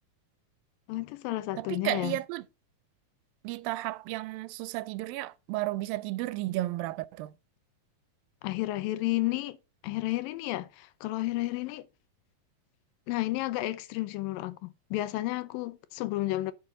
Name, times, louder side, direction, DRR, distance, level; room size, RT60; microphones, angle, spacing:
voice 1, 0.9-2.2 8.4-9.6 9.8-11.9 13.1-16.5, left 17 dB, 85° left, 2.3 m, -32 dB
voice 2, 1.6-2.4 3.4-7.3, right 17 dB, 85° right, 2.3 m, -33 dB
10.5 x 5.5 x 3.7 m
omnidirectional pair, 4.0 m